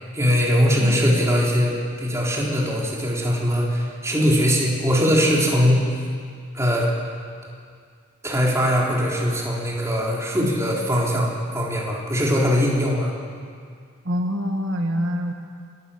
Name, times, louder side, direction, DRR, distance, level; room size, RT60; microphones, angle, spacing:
voice 1, 0.1-5.9 6.5-6.9 8.2-13.1, equal, 15° right, -3 dB, 3.9 m, -21 dB
voice 2, 14.1-15.3, equal, 70° right, 2 dB, 1.8 m, -25 dB
27.5 x 13.5 x 8.7 m, 2.1 s
head